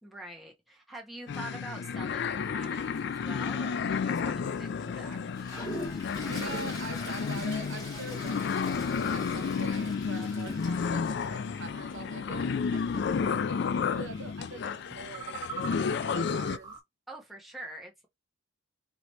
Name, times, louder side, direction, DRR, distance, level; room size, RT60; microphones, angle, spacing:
voice 1, 0.0-4.7 4.9-5.8 12.9-13.4 17.1-18.1, right 1 dB, ahead, 0.9 m, -45 dB
sound 1, 1.3-16.6, left 6 dB, 55° left, 0.3 m, -31 dB
sound 2, 2.3-16.8, right 5 dB, 20° right, 1.2 m, -50 dB
Toilet flush, 5.3-11.2, left 1 dB, 20° left, 1.7 m, -42 dB
voice 2, 6.2-13.6 13.9-16.8, right 3 dB, 60° right, 1.2 m, -44 dB
4.9 x 2.8 x 3.0 m
head